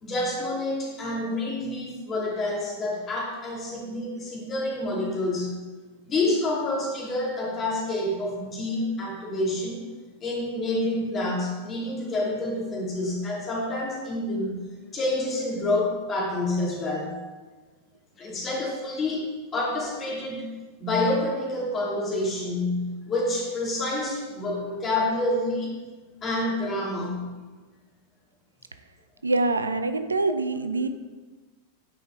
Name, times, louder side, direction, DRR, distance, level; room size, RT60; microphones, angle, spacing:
voice 1, 0.0-5.6 6.1-9.8 10.2-14.6 14.9-17.1 18.2-20.5 20.8-25.7 26.2-27.3, left 2 dB, 25° left, -3 dB, 2.3 m, -28 dB
voice 2, 29.2-30.9, right 3 dB, 75° right, 10 dB, 0.4 m, -25 dB
9.3 x 5.1 x 3.6 m, 1.3 s
figure-of-eight pair, 90°, 0 cm